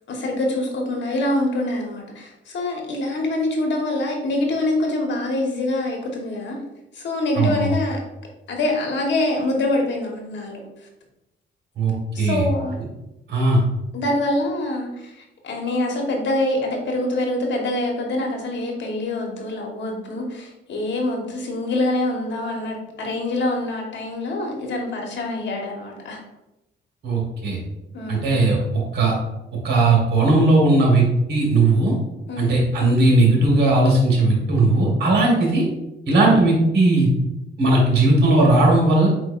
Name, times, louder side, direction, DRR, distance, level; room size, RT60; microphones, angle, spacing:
voice 1, 0.1-6.6 6.9-8.0 8.5-10.6 12.1-12.8 13.9-26.2 27.9-28.3 32.3-32.6, left 1 dB, 65° left, 1 dB, 1.3 m, -25 dB
voice 2, 7.3-7.7 11.8-12.4 13.3-13.6 27.0-27.6 28.1-29.1 29.6-31.0 31.3-31.9 32.4-35.6 36.1-37.1 37.6-39.1, right 2 dB, 55° right, -2 dB, 1.6 m, -17 dB
4.5 x 4.4 x 2.5 m, 0.94 s
cardioid pair, 90°, 20 cm